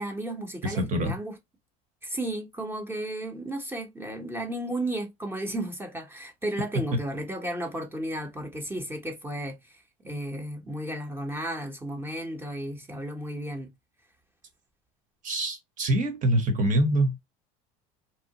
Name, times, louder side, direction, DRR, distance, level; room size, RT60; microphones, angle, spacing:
voice 1, 0.0-1.4 2.0-13.7, right 1 dB, 10° right, 0.8 m, -34 dB
voice 2, 0.6-1.1 15.2-17.3, right 1 dB, 45° right, 1.0 m, -25 dB
2.8 x 2.1 x 2.8 m
supercardioid pair, 100°, 19 cm